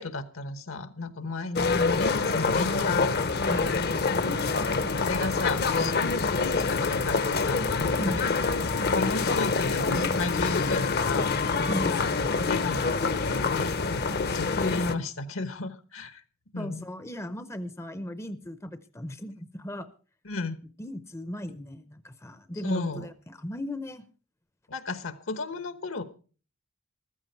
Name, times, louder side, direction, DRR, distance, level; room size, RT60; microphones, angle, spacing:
voice 1, 0.0-3.2 3.6-3.8 4.9-8.2 8.7-16.2 16.5-16.9 20.2-20.6 22.6-23.1 24.7-26.0, left 3 dB, 70° left, 12 dB, 1.3 m, -34 dB
sound 1, 1.6-15.0, left 4 dB, 50° left, 0.9 m, -26 dB
voice 2, 3.5-3.8 8.0-8.2 11.7-12.0 14.3-14.4 16.6-19.9 20.8-24.0, equal, 15° left, 12 dB, 0.6 m, -36 dB
14.5 x 13.5 x 4.5 m, 0.38 s
head